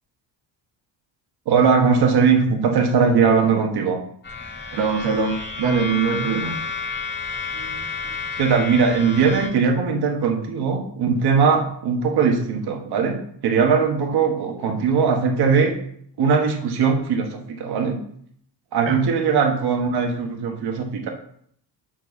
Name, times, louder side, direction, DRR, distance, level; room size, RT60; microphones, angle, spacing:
voice 1, 1.5-4.0 8.4-15.7 16.2-18.0 18.7-21.1, right 5 dB, 55° right, 2 dB, 1.4 m, -20 dB
sound 1, 4.2-9.5, left 4 dB, 25° left, 1.4 m, -31 dB
voice 2, 4.7-6.6 7.5-7.9 18.8-19.0, right 5 dB, 75° right, 2 dB, 1.3 m, -23 dB
8.0 x 4.1 x 5.9 m, 0.66 s
cardioid pair, 155°, 45 cm